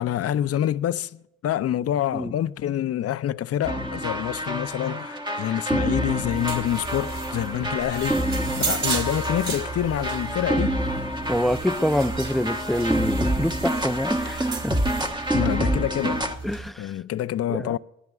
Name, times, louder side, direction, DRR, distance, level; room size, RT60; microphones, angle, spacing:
voice 1, 0.0-8.4 8.7-10.8 15.3-16.4 16.8-17.8, left 11 dB, 50° left, 0.5 m, -27 dB
sound 1, 3.6-16.3, right 1 dB, 15° right, 1.2 m, -27 dB
sound 2, 6.0-16.7, right 4 dB, 40° right, 3.7 m, -34 dB
voice 2, 11.3-14.8 16.4-17.0 17.5-17.8, equal, ahead, 0.5 m, -26 dB
24.5 x 19.0 x 2.4 m
cardioid pair, 90°, 30 cm